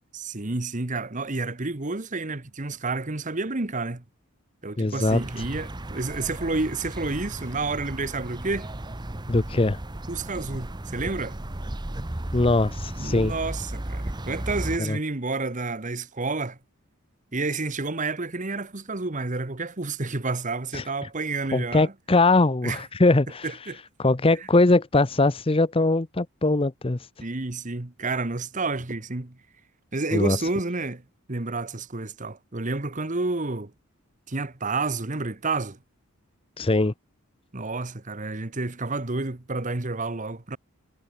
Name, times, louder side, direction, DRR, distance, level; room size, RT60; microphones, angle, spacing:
voice 1, 0.1-4.0 4.6-8.7 10.1-11.4 13.0-16.6 17.3-21.9 22.6-22.8 23.4-23.8 27.2-29.4 29.9-31.0 31.3-33.7 34.3-35.8 37.5-40.6, right 3 dB, 35° right, 1.3 m, -30 dB
voice 2, 4.8-5.2 9.3-9.8 12.3-13.3 14.8-15.0 20.7-20.8 21.5-23.5 24.0-27.0 30.1-30.4 36.6-36.9, left 2 dB, 25° left, 0.7 m, -21 dB
sound 1, 5.0-14.8, right 1 dB, 20° right, 1.0 m, -34 dB
head